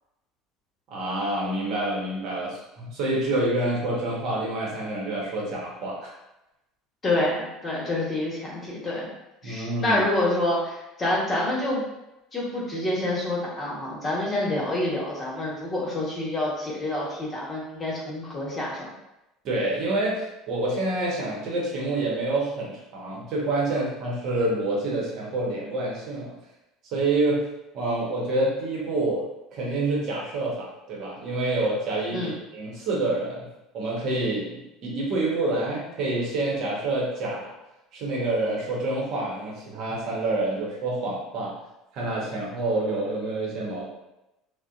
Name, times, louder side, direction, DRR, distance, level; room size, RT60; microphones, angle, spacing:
voice 1, 0.9-6.1 9.4-10.0 19.4-26.3 26.9-27.5 27.7-33.5 33.7-37.5 37.9-41.6 41.9-43.9, right 2 dB, 60° right, -4 dB, 0.8 m, -27 dB
voice 2, 7.0-9.1 9.4-11.8 12.3-18.9 32.1-32.3, left 1 dB, 30° left, -5 dB, 1.1 m, -27 dB
2.5 x 2.1 x 2.4 m, 0.93 s
hypercardioid pair, 70°, 0 cm